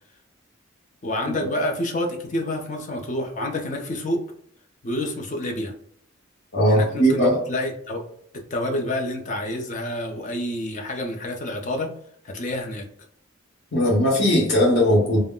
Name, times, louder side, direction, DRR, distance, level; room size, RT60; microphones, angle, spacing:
voice 1, 1.0-4.2 4.8-5.7 6.7-7.2 7.5-8.0 8.5-11.9 12.2-12.8, left 1 dB, 35° left, 3 dB, 0.5 m, -28 dB
voice 2, 6.5-7.4 13.7-15.2, equal, 55° left, -4 dB, 0.9 m, -19 dB
2.2 x 2.0 x 3.6 m, 0.66 s
head